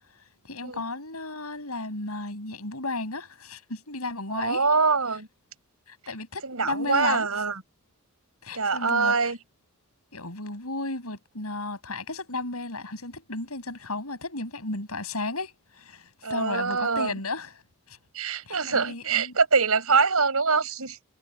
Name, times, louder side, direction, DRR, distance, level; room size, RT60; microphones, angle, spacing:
voice 1, 0.5-4.6 5.9-7.3 8.4-9.3 10.1-17.6 17.9-18.0 18.5-19.3, left 2 dB, 90° left, 6.8 m, -34 dB
voice 2, 4.3-5.3 6.4-7.6 8.5-9.4 16.2-17.1 18.1-21.0, right 4 dB, 85° right, 5.3 m, -24 dB
head